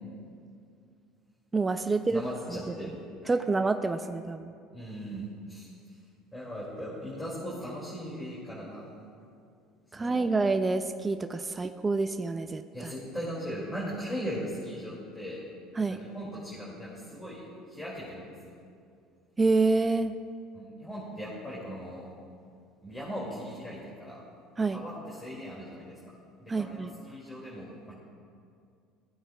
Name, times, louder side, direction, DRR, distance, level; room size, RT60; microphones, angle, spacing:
voice 1, 1.5-2.2 3.3-4.5 9.9-12.9 15.8-16.0 19.4-20.1 24.6-24.8 26.5-26.9, right 3 dB, 20° right, 8 dB, 0.4 m, -27 dB
voice 2, 2.1-3.0 4.7-6.0 6.3-8.9 9.9-10.2 11.5-11.6 12.7-15.4 15.9-17.4 17.7-18.5 20.5-22.1 22.8-24.2 24.7-25.9 26.4-27.9, equal, 10° left, -7 dB, 2.2 m, -39 dB
16.0 x 8.8 x 2.2 m, 2.3 s
supercardioid pair, 110°, 0 cm